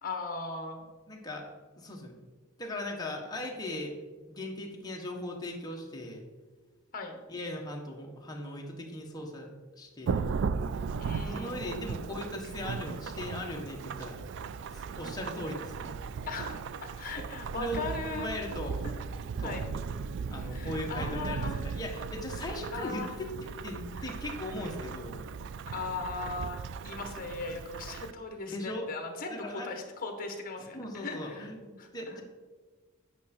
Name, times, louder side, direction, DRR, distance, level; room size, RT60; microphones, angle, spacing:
voice 1, 0.0-0.8 6.9-7.2 11.0-11.8 16.3-16.6 17.0-18.4 19.4-19.6 20.5-21.6 22.4-23.1 25.7-31.5 31.8-31.9, left 3 dB, 40° left, 5 dB, 1.2 m, -38 dB
voice 2, 1.1-1.5 1.8-2.1 2.6-3.9 4.3-6.2 7.3-9.5 9.7-10.3 11.4-14.2 14.7-16.0 17.6-17.9 18.1-18.8 19.4-19.6 20.3-25.3 28.5-28.9 29.3-29.8 30.6-32.2, left 1 dB, 20° left, 0 dB, 1.2 m, -38 dB
Thunderstorm / Rain, 10.1-28.1, right 5 dB, 55° right, 0.3 m, -37 dB
9.3 x 5.6 x 4.3 m, 1.3 s
head